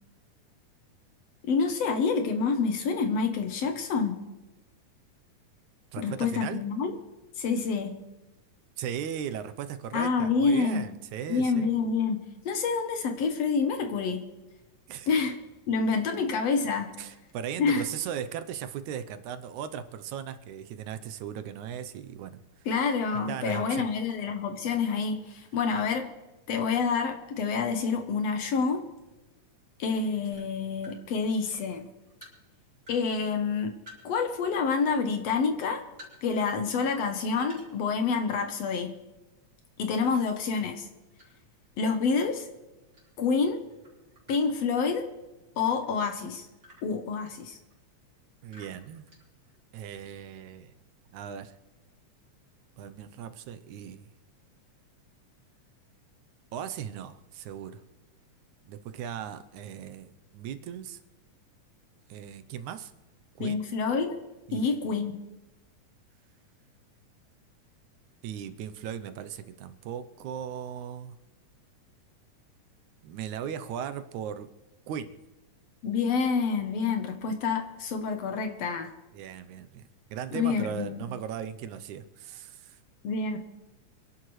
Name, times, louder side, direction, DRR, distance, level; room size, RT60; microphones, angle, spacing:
voice 1, 1.4-4.2 6.0-6.9 7.4-8.1 9.9-10.8 11.3-14.2 15.1-15.4 15.7-17.0 17.6-17.8 22.7-26.1 26.5-28.9 29.8-31.9 32.9-33.8 34.0-35.8 36.2-38.9 39.8-40.9 41.8-42.5 43.2-43.6 44.3-45.1 45.6-46.5 46.8-47.6 63.4-64.2 64.5-65.2 75.8-78.9 80.3-81.0 83.0-83.4, left 5 dB, 65° left, 6 dB, 1.9 m, -27 dB
voice 2, 5.9-6.7 8.8-11.7 14.9-15.1 17.0-22.4 23.3-23.9 48.4-49.1 49.7-50.7 51.1-51.5 52.8-54.0 56.5-57.8 58.7-61.0 62.1-62.9 63.4-63.6 64.5-64.6 68.2-71.2 73.0-74.5 74.9-75.2 79.1-82.8, right 9 dB, 80° right, 11 dB, 2.1 m, -37 dB
sound 1, 30.3-31.0 31.5-33.0 33.3-34.7 35.0-36.5 36.8-36.9 37.4-38.4 38.7-39.0 40.0-41.6 42.0-43.4 43.7-45.3 45.8-47.9 48.5-49.8, left 1 dB, 30° right, 3.6 m, -54 dB
26.5 x 11.0 x 3.2 m, 1.1 s
omnidirectional pair, 3.5 m